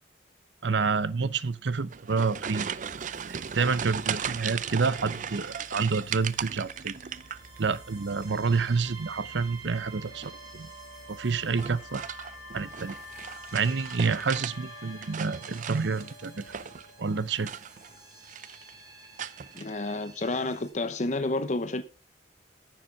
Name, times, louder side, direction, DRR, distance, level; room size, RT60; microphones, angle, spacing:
voice 1, 0.6-2.8 3.5-7.0 7.6-10.7 11.1-12.0 12.5-13.0 13.5-16.5 17.0-17.5, right 4 dB, 80° right, 0.7 m, -28 dB
sound 1, 1.8-7.8 8.1-8.7 10.1-10.5 11.5-14.6 14.9-16.9 17.4-18.0 18.2-18.7 19.2-19.6, right 8 dB, 45° right, 0.5 m, -37 dB
sound 2, 2.2-20.7, right 3 dB, 25° right, 3.2 m, -49 dB
Wind instrument woodwind instrument, 10.1-17.1, left 4 dB, 90° left, 2.0 m, -48 dB
voice 2, 19.6-21.8, left 2 dB, 40° left, 0.8 m, -30 dB
10.0 x 7.3 x 5.8 m
head